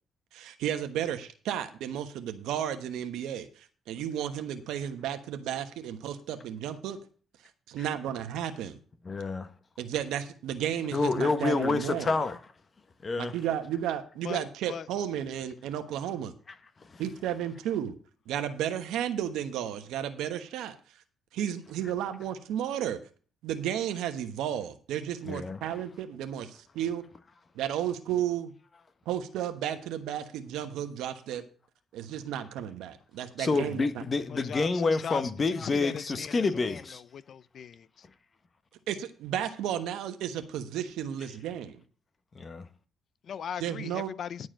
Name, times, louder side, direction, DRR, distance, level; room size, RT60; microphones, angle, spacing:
voice 1, 0.3-7.0 7.7-8.8 9.8-12.1 13.2-16.3 17.0-17.9 18.3-20.8 21.3-23.0 23.4-27.0 27.5-28.5 29.1-31.4 31.9-34.0 38.9-41.8 43.6-44.1, right 10 dB, 90° right, 1.1 m, -33 dB
voice 2, 9.0-9.5 10.9-12.4 13.0-13.3 16.9-17.0 25.2-25.6 33.4-37.0 42.3-42.7, left 3 dB, 35° left, 1.3 m, -28 dB
voice 3, 34.3-34.7 35.0-35.2 35.6-36.3 37.1-37.8 43.3-43.9 44.2-44.4, left 8 dB, 60° left, 0.5 m, -38 dB
11.0 x 4.7 x 7.5 m
cardioid pair, 90°, 0 cm